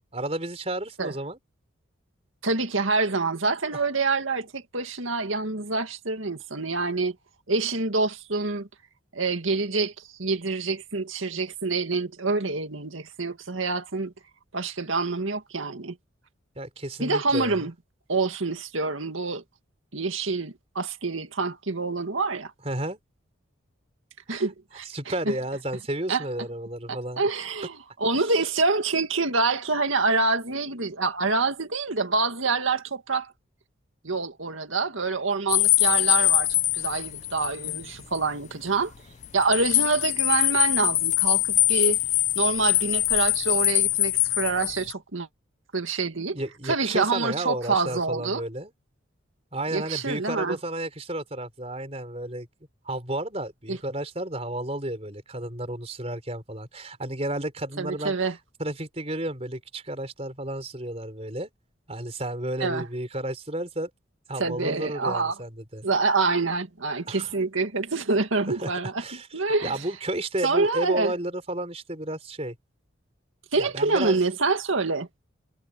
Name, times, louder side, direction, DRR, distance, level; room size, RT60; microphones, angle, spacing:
voice 1, 0.0-1.4 3.7-3.8 16.5-17.7 22.6-23.0 24.3-24.4 24.9-27.2 46.3-48.7 49.5-52.5 52.8-58.1 58.6-61.5 61.9-63.9 64.3-65.9 67.1-67.3 68.5-69.3 69.6-72.6 73.5-74.2, right 1 dB, 30° right, 4.5 m, -32 dB
voice 2, 2.4-7.2 7.5-8.7 9.1-9.9 10.2-14.1 14.5-16.0 17.0-17.7 18.1-19.4 19.9-22.5 24.3-25.3 26.1-26.2 26.9-33.3 34.0-38.9 39.3-42.0 42.4-45.3 45.7-46.4 46.6-48.4 49.7-50.6 53.7-53.8 57.8-58.3 62.6-62.9 64.4-65.3 65.8-69.0 69.3-69.8 70.4-71.1 73.5-75.1, right 3 dB, 85° right, 2.1 m, -26 dB
sound 1, 35.5-37.8 38.1-38.2 39.2-44.9, left 15 dB, 35° left, 0.3 m, -23 dB
head